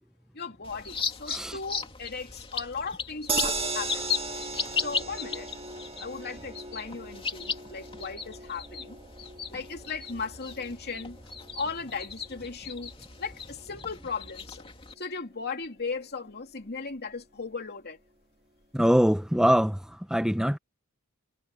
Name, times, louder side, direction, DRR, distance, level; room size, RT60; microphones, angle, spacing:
voice 1, 0.3-4.1 4.7-5.5 6.0-9.0 9.5-11.2 11.5-12.9 13.2-14.6 15.0-18.0, left 4 dB, 45° left, 2.9 m, -37 dB
sound 1, 0.6-14.9, left 6 dB, 25° left, 2.6 m, -37 dB
sound 2, 3.3-15.5 15.9-16.0 16.3-16.4, right 3 dB, 25° right, 2.5 m, -38 dB
voice 2, 18.7-20.6, equal, 5° right, 1.0 m, -23 dB
head